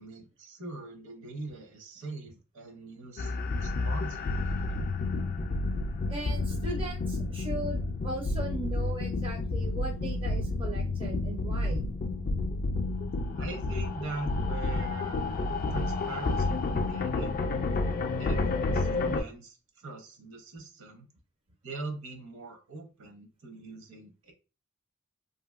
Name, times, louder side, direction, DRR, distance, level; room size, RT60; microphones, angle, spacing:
voice 1, 0.0-4.9 13.3-17.4 18.2-18.5 18.7-21.1 21.6-24.3, right 2 dB, 65° right, 3 dB, 0.8 m, -42 dB
sound 1, 3.2-19.2, left 3 dB, 40° left, 0.3 m, -30 dB
voice 2, 6.1-11.9, right 2 dB, 25° right, 1 dB, 0.4 m, -38 dB
2.7 x 2.5 x 2.4 m, 0.32 s
head